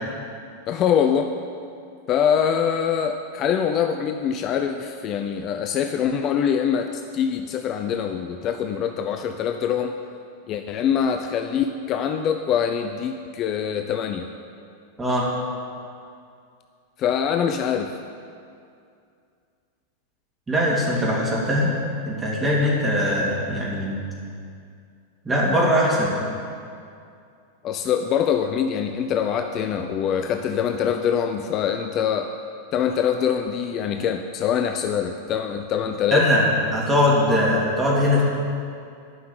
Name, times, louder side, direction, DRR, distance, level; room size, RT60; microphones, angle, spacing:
voice 1, 0.7-1.3 2.1-10.0 10.5-14.3 17.0-17.9 27.6-32.3 32.7-36.2, left 8 dB, 35° left, 6 dB, 0.5 m, -24 dB
voice 2, 15.0-15.3 20.5-21.7 22.0-23.9 25.2-26.2 36.1-38.2, left 1 dB, 15° right, -5 dB, 3.4 m, -21 dB
11.5 x 5.8 x 8.8 m, 2.4 s
figure-of-eight pair, 90°, 0 cm